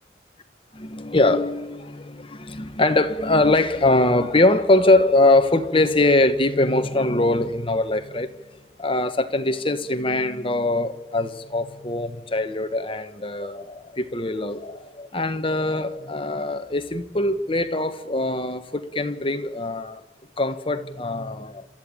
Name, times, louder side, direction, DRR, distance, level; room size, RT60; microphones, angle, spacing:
voice 1, 0.7-8.3 8.8-20.0 20.4-21.7, left 2 dB, 30° left, 1.3 m, -22 dB
28.5 x 13.5 x 8.9 m
head